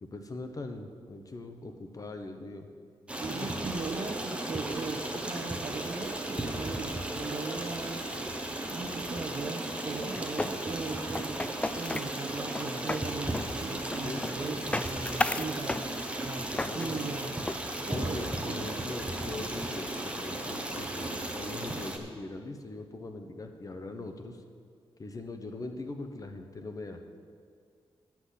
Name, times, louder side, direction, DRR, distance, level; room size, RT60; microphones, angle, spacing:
voice 1, 0.0-2.7 3.3-3.5 14.0-14.2 16.5-17.0 17.8-24.4 25.0-27.0, left 2 dB, 35° left, 6 dB, 1.0 m, -41 dB
Stream, 3.1-22.0, right 1 dB, 10° right, 1.1 m, -35 dB
voice 2, 3.2-17.4 17.9-19.4, right 3 dB, 45° right, 5 dB, 1.1 m, -39 dB
sound 1, 10.2-18.3, left 2 dB, 10° left, 0.3 m, -36 dB
11.0 x 6.0 x 8.4 m, 2.1 s
wide cardioid pair, 105°, 10 cm